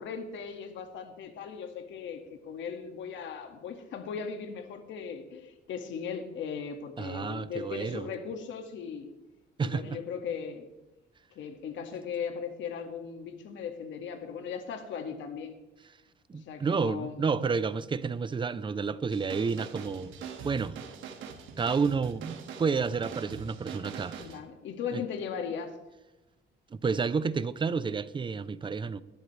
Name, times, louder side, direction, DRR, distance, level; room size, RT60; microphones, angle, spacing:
voice 1, 0.0-9.1 9.6-10.7 11.3-15.6 16.3-17.3 24.2-25.8, left 6 dB, 75° left, 2.1 m, -38 dB
voice 2, 7.0-8.1 9.6-9.8 16.3-20.1 20.4-20.8 21.6-24.3 24.9-25.0 26.7-29.0, right 5 dB, 25° right, 0.7 m, -30 dB
sound 1, 19.1-24.4, right 6 dB, 90° right, 2.0 m, -43 dB
19.5 x 12.0 x 3.4 m
cardioid pair, 130°, 20 cm